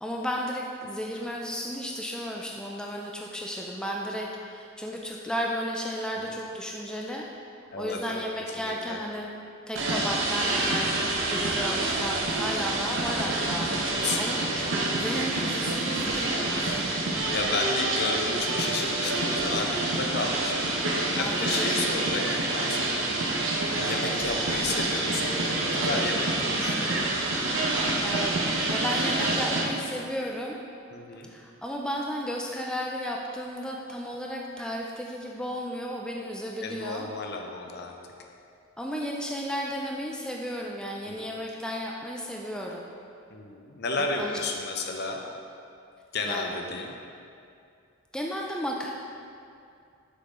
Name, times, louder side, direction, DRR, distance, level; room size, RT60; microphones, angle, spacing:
voice 1, 0.0-7.3 7.8-9.3 9.7-10.9 11.3-14.7 15.0-17.0 21.1-22.0 27.8-28.3 28.7-30.6 31.3-37.1 38.8-42.9 44.0-44.4 46.2-46.4 48.1-48.9, equal, 5° left, -1 dB, 0.4 m, -34 dB
voice 2, 7.7-8.2 8.5-9.0 14.0-14.7 15.9-16.3 17.3-23.1 23.7-26.9 30.9-31.3 36.6-37.9 41.1-41.4 43.3-45.2 46.1-47.0, left 3 dB, 55° left, 2 dB, 0.7 m, -33 dB
sound 1, 9.8-29.7, right 2 dB, 70° right, 0.8 m, -27 dB
6.7 x 5.6 x 3.7 m, 2.5 s
head